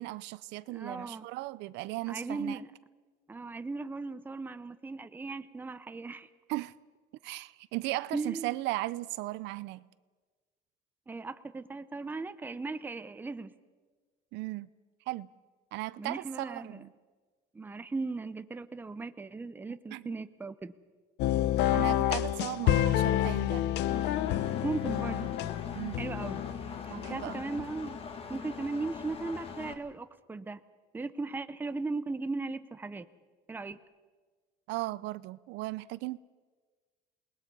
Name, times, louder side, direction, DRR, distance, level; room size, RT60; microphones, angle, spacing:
voice 1, 0.0-2.6 6.5-6.7 7.2-9.9 14.3-14.7 15.1-15.3 15.7-16.9 19.9-20.1 21.7-23.7 25.7-26.0 26.9-27.4 34.7-36.2, right 19 dB, 80° right, 0.6 m, -37 dB
voice 2, 0.7-1.3 2.1-2.7 3.3-6.3 8.1-8.6 11.1-13.5 16.0-16.8 17.5-20.7 24.6-25.3 26.0-26.4 26.8-28.0 28.3-30.6 30.9-33.1 33.5-33.8, right 3 dB, 10° right, 0.7 m, -37 dB
sound 1, 21.2-27.6, left 12 dB, 70° left, 0.8 m, -29 dB
Engine, 23.9-29.7, left 5 dB, 30° left, 1.8 m, -42 dB
28.0 x 20.5 x 5.4 m
cardioid pair, 155°, 18 cm